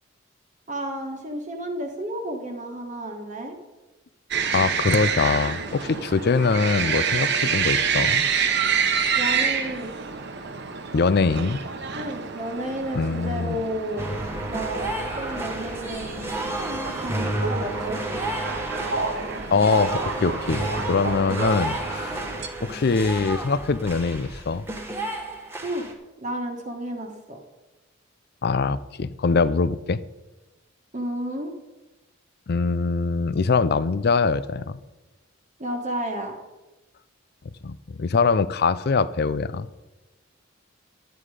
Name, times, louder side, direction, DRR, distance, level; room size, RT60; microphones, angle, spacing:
voice 1, 0.7-3.5 9.1-9.9 12.0-14.0 14.5-16.2 16.7-18.2 25.6-25.9 26.2-27.4 30.9-31.5 35.6-36.4, right 1 dB, 35° right, 1 dB, 1.3 m, -32 dB
sound 1, 4.3-22.5, right 6 dB, 55° right, 1.0 m, -28 dB
voice 2, 4.5-8.3 10.9-11.6 12.9-13.6 19.5-20.6 20.9-22.2 22.6-24.6 28.4-30.0 32.5-34.8 37.6-39.7, left 4 dB, 50° left, 17 dB, 0.4 m, -23 dB
sound 2, 14.0-25.9, right 1 dB, 10° right, 1.3 m, -31 dB
11.5 x 9.3 x 4.9 m, 1.1 s
head